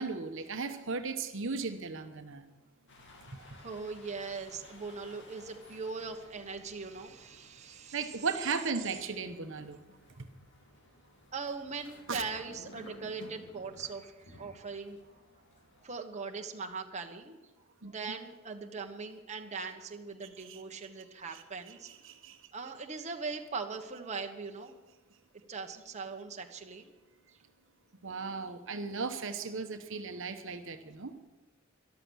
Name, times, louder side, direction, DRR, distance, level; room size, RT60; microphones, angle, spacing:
voice 1, 0.0-2.4 3.3-3.6 7.9-9.8 10.2-10.3 12.1-12.2 17.8-17.9 20.4-20.6 21.3-22.5 28.0-31.1, right 4 dB, 65° right, 7 dB, 1.1 m, -37 dB
sound 1, 2.9-15.9, left 1 dB, 60° left, 2.3 m, -56 dB
voice 2, 3.6-8.1 11.3-15.0 15.8-17.4 17.8-21.9 22.5-24.7 25.5-26.9, right 4 dB, 35° right, 3 dB, 1.2 m, -40 dB
13.5 x 12.0 x 6.3 m, 1.2 s
head